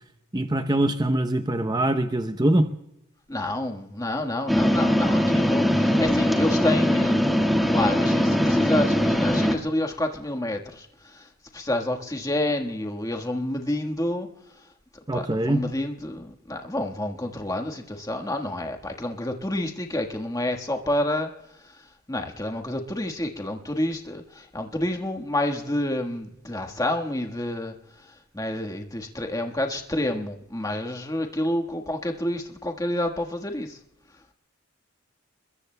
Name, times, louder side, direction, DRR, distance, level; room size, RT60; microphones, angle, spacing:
voice 1, 0.3-2.7 15.1-15.6, right 1 dB, 20° right, 8 dB, 0.6 m, -23 dB
voice 2, 3.3-7.3 7.6-11.3 11.5-14.3 15.1-21.3 22.1-27.7 28.3-33.8, left 1 dB, 15° left, 4 dB, 1.4 m, -29 dB
sound 1, 4.5-9.6, equal, ahead, 1.5 m, -21 dB
29.5 x 21.5 x 2.2 m, 0.85 s
head